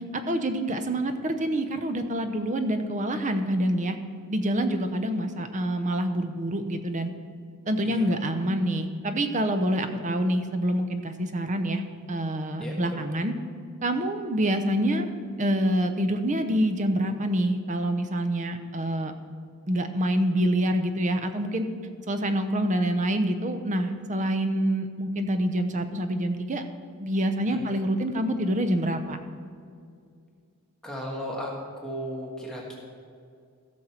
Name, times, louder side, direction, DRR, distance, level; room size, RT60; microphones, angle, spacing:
voice 1, 0.1-4.0 4.3-7.1 7.7-11.8 12.1-13.3 13.8-15.1 15.4-19.1 19.7-21.6 22.1-26.6 27.0-29.2, right 1 dB, 35° right, 8 dB, 0.8 m, -26 dB
voice 2, 12.6-13.0 27.5-27.8 30.8-31.5 31.8-32.8, equal, 5° left, -4 dB, 1.5 m, -35 dB
16.0 x 6.5 x 4.4 m, 2.3 s
head